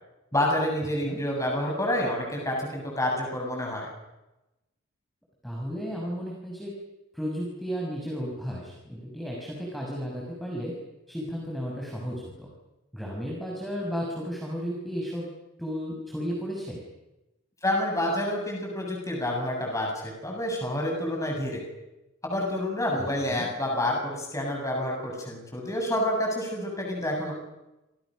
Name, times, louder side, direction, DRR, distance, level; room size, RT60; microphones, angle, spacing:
voice 1, 0.3-3.9 17.6-21.6 22.2-27.3, left 1 dB, 15° left, 0 dB, 7.8 m, -28 dB
voice 2, 5.4-6.7 7.1-10.7 11.1-12.5 12.9-15.3 15.6-16.8 23.0-23.5, equal, ahead, -2 dB, 6.5 m, -34 dB
29.5 x 28.0 x 6.6 m, 0.98 s
head